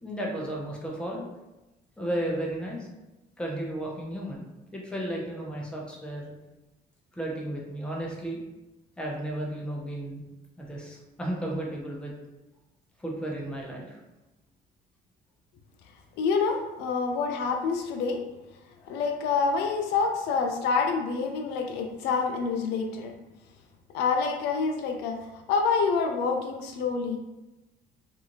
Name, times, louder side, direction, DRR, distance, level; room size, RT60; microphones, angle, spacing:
voice 1, 0.0-1.3 2.0-2.9 3.4-6.3 7.1-8.4 9.0-10.2 10.6-12.1 13.0-14.0, right 1 dB, 5° left, -2 dB, 0.6 m, -33 dB
voice 2, 16.2-18.2 18.8-23.1 23.9-25.2 25.5-27.2, left 5 dB, 85° left, 4 dB, 0.4 m, -27 dB
2.6 x 2.4 x 3.0 m, 1.0 s
cardioid pair, 110°, 17 cm